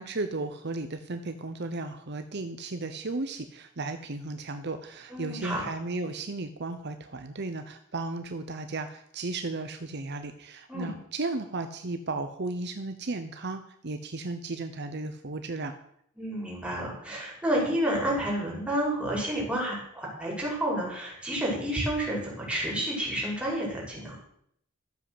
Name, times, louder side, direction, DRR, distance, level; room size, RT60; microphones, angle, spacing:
voice 1, 0.0-15.7, right 3 dB, 55° right, 8 dB, 0.9 m, -35 dB
voice 2, 5.1-5.6 10.7-10.9 16.2-24.1, right 1 dB, 5° right, -4 dB, 5.4 m, -30 dB
13.5 x 7.7 x 7.9 m, 0.72 s
head